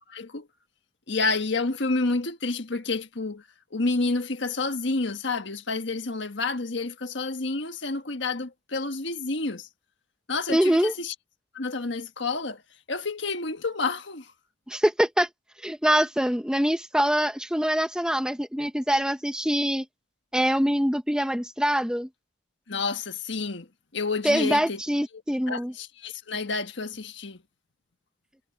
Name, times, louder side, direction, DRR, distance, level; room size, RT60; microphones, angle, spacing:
voice 1, 0.1-0.5 1.1-3.4 3.7-9.7 10.3-11.1 11.5-12.6 12.9-14.3 22.7-23.7 23.9-24.8 25.1-25.2 25.5-27.4, left 3 dB, 65° left, 1.5 m, -29 dB
voice 2, 10.5-10.9 14.7-15.3 15.6-19.8 20.3-22.1 24.2-25.7, equal, 5° right, 1.0 m, -24 dB
head